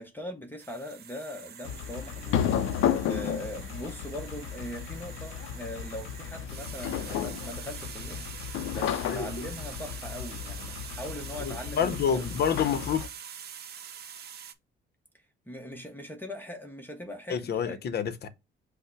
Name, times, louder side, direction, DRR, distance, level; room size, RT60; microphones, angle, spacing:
voice 1, 0.0-2.8 3.0-12.5 15.1-17.8, equal, 10° left, 0.8 m, -41 dB
sound 1, 0.6-14.5, right 8 dB, 55° right, 0.6 m, -45 dB
sound 2, 1.6-13.1, left 9 dB, 90° left, 0.5 m, -33 dB
voice 2, 9.1-9.4 11.4-13.0 17.3-18.3, left 7 dB, 55° left, 0.7 m, -28 dB
5.5 x 2.1 x 4.5 m
cardioid pair, 90°, 20 cm